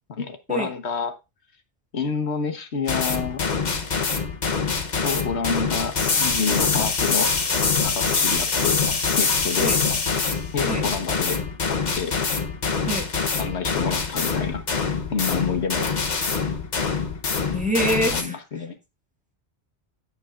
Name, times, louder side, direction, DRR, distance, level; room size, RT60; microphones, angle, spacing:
voice 1, 0.1-1.2 1.9-3.5 5.0-7.3 7.8-8.8 9.2-9.7 10.5-11.4 12.0-12.2 13.4-15.9 18.1-18.8, left 5 dB, 75° left, 8 dB, 1.4 m, -28 dB
sound 1, 2.9-18.2, left 5 dB, 45° left, 1.0 m, -24 dB
voice 2, 17.5-18.4, right 1 dB, 5° right, 2 dB, 1.7 m, -25 dB
16.5 x 5.5 x 2.5 m, 0.25 s
omnidirectional pair, 1.1 m